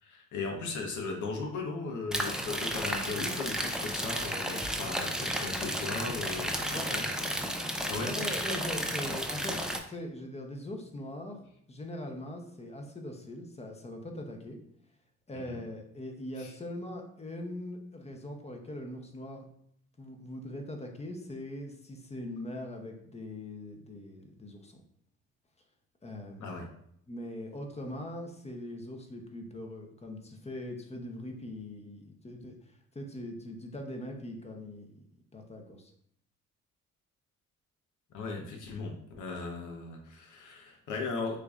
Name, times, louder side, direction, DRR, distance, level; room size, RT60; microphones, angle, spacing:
voice 1, 0.0-7.4 7.8-8.1 15.3-15.6 16.4-16.5 26.4-26.7 38.1-41.4, left 4 dB, 75° left, 2 dB, 0.9 m, -37 dB
sound 1, 2.1-9.8, equal, ahead, 0.4 m, -33 dB
voice 2, 8.0-9.6 9.9-11.4 11.7-14.6 15.3-19.5 20.0-24.8 26.0-26.6 27.1-34.9 35.3-35.9, left 1 dB, 20° left, 3 dB, 0.8 m, -41 dB
6.4 x 2.7 x 2.4 m, 0.69 s
cardioid pair, 90°, 30 cm